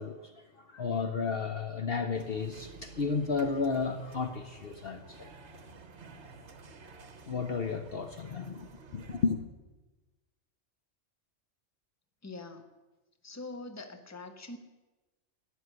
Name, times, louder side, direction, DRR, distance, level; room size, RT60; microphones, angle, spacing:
voice 1, 0.0-5.3 7.3-9.4, left 5 dB, 55° left, 7 dB, 1.0 m, -33 dB
sound 1, 2.1-9.3, right 4 dB, 60° right, 1.5 m, -51 dB
voice 2, 12.2-12.7 13.2-14.6, left 2 dB, 15° left, 7 dB, 1.0 m, -43 dB
13.0 x 7.9 x 9.6 m, 1.2 s
omnidirectional pair, 1.3 m